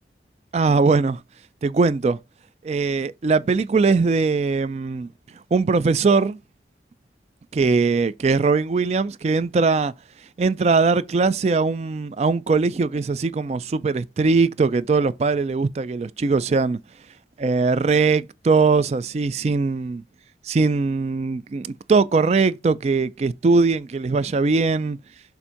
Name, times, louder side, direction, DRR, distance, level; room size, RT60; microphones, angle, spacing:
voice 1, 0.5-1.2 1.6-2.2 2.6-5.1 5.5-6.4 7.5-9.9 10.4-16.8 17.4-20.0 20.4-25.0, right 4 dB, 35° right, 0.3 m, -20 dB
7.0 x 2.6 x 5.7 m
head